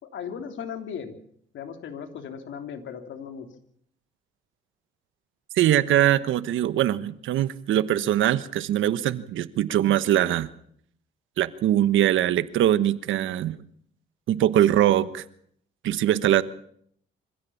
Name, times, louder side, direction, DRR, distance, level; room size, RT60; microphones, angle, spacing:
voice 1, 0.0-1.2 1.5-3.5, left 7 dB, 70° left, 6 dB, 3.1 m, -37 dB
voice 2, 5.5-10.5 11.4-13.6 14.3-15.2 15.8-16.4, right 12 dB, 80° right, 14 dB, 1.2 m, -22 dB
25.0 x 15.5 x 7.2 m, 0.66 s
cardioid pair, 90°, 20 cm